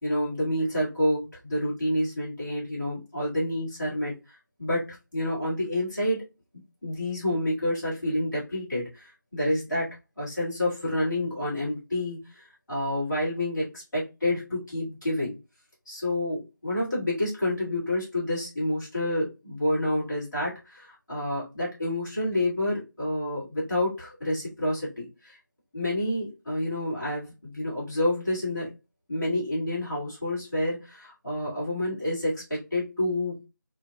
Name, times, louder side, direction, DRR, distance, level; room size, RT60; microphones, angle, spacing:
voice 1, 0.0-6.3 6.8-15.4 15.8-25.4 25.7-28.7 29.1-33.4, left 1 dB, ahead, -27 dB, 0.7 m, -29 dB
2.7 x 2.6 x 2.3 m, 0.26 s
figure-of-eight pair, 180°, 11 cm